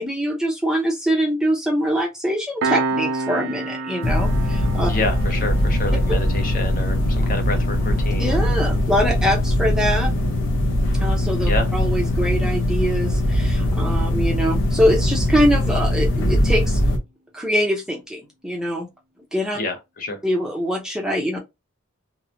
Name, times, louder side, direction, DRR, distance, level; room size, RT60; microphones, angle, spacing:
voice 1, 0.0-4.9 8.2-10.1 11.0-16.8 17.3-18.9 19.3-19.6 20.2-21.4, equal, 5° right, 0.5 m, -23 dB
Piano, 2.6-13.7, right 3 dB, 80° right, 0.5 m, -33 dB
sound 1, 4.0-17.0, left 1 dB, 75° left, 0.8 m, -21 dB
voice 2, 4.8-8.4 11.5-11.7 19.5-20.2, left 2 dB, 40° left, 0.6 m, -28 dB
2.8 x 2.1 x 2.4 m
head